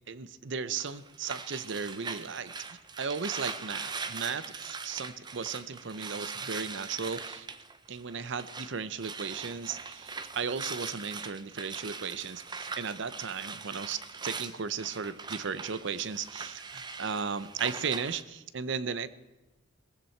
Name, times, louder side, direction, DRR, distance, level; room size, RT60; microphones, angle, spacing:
voice 1, 0.1-7.5 7.9-19.1, right 6 dB, 60° right, 15 dB, 0.7 m, -36 dB
sound 1, 0.8-8.7 9.0-18.2, right 4 dB, 20° right, 0.6 m, -41 dB
18.0 x 15.5 x 4.5 m, 1.1 s
head